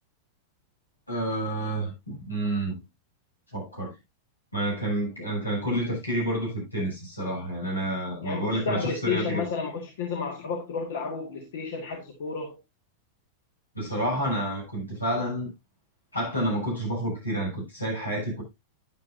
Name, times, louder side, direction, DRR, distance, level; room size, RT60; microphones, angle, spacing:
voice 1, 1.1-2.8 3.5-3.9 4.5-9.4 13.7-15.5 16.1-18.4, right 1 dB, 85° left, 7.0 m, -29 dB
voice 2, 8.2-12.6, left 5 dB, 60° left, 2.0 m, -31 dB
11.5 x 9.6 x 2.7 m
figure-of-eight pair, 90°, 0 cm